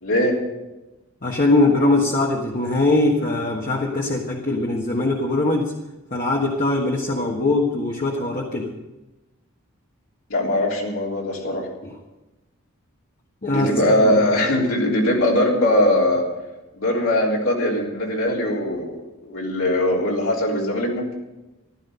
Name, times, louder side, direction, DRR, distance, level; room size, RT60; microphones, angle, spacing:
voice 1, 0.0-0.4 10.3-11.7 13.5-16.3 16.8-21.1, left 1 dB, 70° left, -2 dB, 3.5 m, -21 dB
voice 2, 1.2-5.7 6.1-8.7 11.8-11.9 13.4-13.7 14.0-14.1 14.5-14.7, left 2 dB, 40° left, -1 dB, 1.5 m, -21 dB
15.0 x 12.5 x 5.7 m, 1.0 s
head